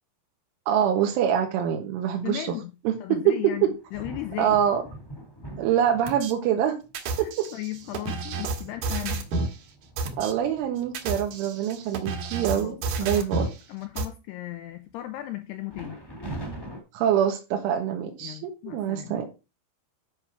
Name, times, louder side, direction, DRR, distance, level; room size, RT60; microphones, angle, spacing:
voice 1, 0.7-2.5 2.9-3.0 3.3-3.4 4.4-4.8 5.6-6.8 7.2-7.5 10.2-13.5 16.9-19.2, right 9 dB, 85° right, 3.8 m, -25 dB
voice 2, 2.2-2.7 3.0-4.6 7.2-9.3 12.5-16.0 18.2-19.2, left 16 dB, 90° left, 2.4 m, -36 dB
sound 1, 3.5-6.4 7.1-7.2 7.7-11.3 11.8-12.0 12.3-12.7 13.1-13.9 15.7-16.8, right 1 dB, 10° left, 1.1 m, -43 dB
sound 2, 6.1-6.3 6.9-9.6 10.0-10.3 10.8-13.6 14.0-14.1, right 3 dB, 60° right, 2.4 m, -30 dB
11.0 x 5.9 x 4.9 m
omnidirectional pair, 5.5 m